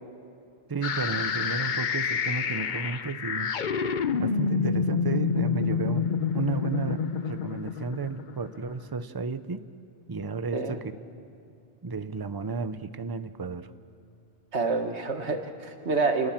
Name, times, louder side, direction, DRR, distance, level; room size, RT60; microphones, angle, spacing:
voice 1, 0.7-3.5 4.1-9.6 10.1-10.8 11.8-13.7, right 4 dB, 25° right, 12 dB, 0.6 m, -33 dB
sound 1, 0.8-8.7, left 6 dB, 50° left, 0.8 m, -28 dB
voice 2, 14.5-16.3, right 3 dB, 75° right, 5 dB, 2.0 m, -27 dB
29.5 x 20.0 x 7.4 m, 2.5 s
omnidirectional pair, 1.2 m